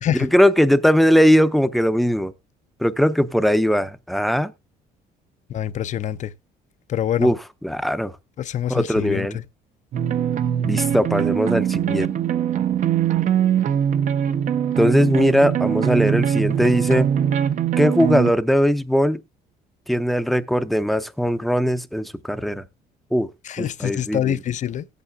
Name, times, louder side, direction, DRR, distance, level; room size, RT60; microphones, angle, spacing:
voice 1, 0.2-2.3 2.8-4.5 7.2-7.4 7.6-8.2 8.7-9.4 10.6-12.1 14.8-17.1 17.8-19.2 19.9-22.6 23.1-23.3 23.6-24.4, equal, ahead, 0.6 m, -19 dB
voice 2, 5.5-6.3 6.9-7.3 8.4-9.4 23.4-24.9, left 10 dB, 45° left, 0.6 m, -25 dB
sound 1, 9.9-18.3, right 9 dB, 50° right, 0.7 m, -22 dB
18.0 x 8.3 x 2.3 m
cardioid pair, 110°, 17 cm